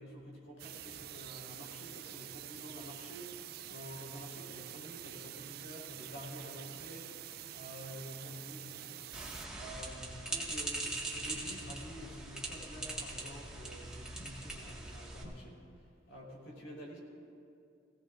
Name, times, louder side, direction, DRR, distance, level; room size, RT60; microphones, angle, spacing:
voice 1, 0.0-9.1 9.5-17.0, equal, 75° left, -3 dB, 4.0 m, -49 dB
sound 1, 0.6-9.5, right 12 dB, 50° right, 0.4 m, -47 dB
sound 2, 9.1-15.2, right 2 dB, 5° right, 1.7 m, -41 dB
21.5 x 16.5 x 2.5 m, 2.5 s
head